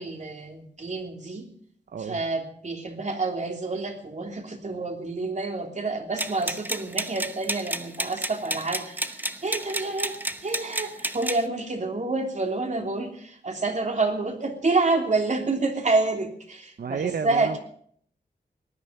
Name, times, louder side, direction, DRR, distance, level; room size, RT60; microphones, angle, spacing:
voice 1, 0.0-1.5 2.0-10.1 10.4-17.6, right 3 dB, 45° right, 3 dB, 3.2 m, -28 dB
voice 2, 1.9-2.2 16.8-17.6, right 6 dB, 65° right, 11 dB, 0.8 m, -31 dB
sound 1, 6.2-11.4, right 1 dB, 10° right, 1.0 m, -31 dB
19.0 x 11.0 x 6.8 m, 0.63 s
wide cardioid pair, 80°, 18 cm